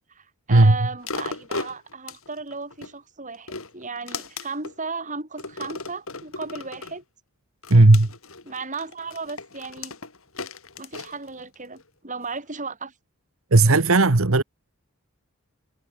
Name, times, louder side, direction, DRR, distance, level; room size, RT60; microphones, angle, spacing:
voice 1, 0.1-7.0 8.4-10.0 10.8-12.9, right 4 dB, 35° right, 7.4 m, -35 dB
sound 1, 1.0-2.9 3.3-4.8 5.4-7.0 7.6-11.8 12.3-12.4, left 3 dB, 75° left, 4.9 m, -36 dB
voice 2, 7.7-8.1 13.5-14.4, right 2 dB, 75° right, 1.4 m, -15 dB
head